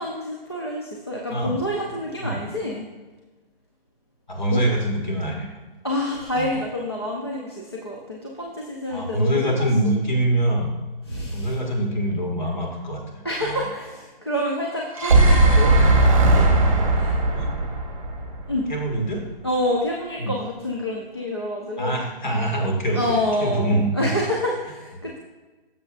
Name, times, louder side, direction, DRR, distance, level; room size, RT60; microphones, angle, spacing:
voice 1, 0.0-2.9 4.5-4.6 5.8-9.5 9.8-9.9 11.1-11.6 13.2-15.8 16.3-16.5 16.9-17.2 18.5-18.7 19.4-22.4 22.9-25.2, left 1 dB, 25° left, -3 dB, 0.5 m, -28 dB
voice 2, 1.9-2.4 4.3-5.5 6.3-6.5 8.9-10.7 11.3-13.7 17.3-17.5 18.7-19.2 20.2-20.3 21.8-24.1, right 1 dB, 50° left, 0 dB, 1.9 m, -24 dB
sound 1, 14.7-18.9, right 2 dB, 35° right, 1.0 m, -17 dB
10.5 x 6.8 x 2.4 m, 1.2 s
hypercardioid pair, 180°, 29 cm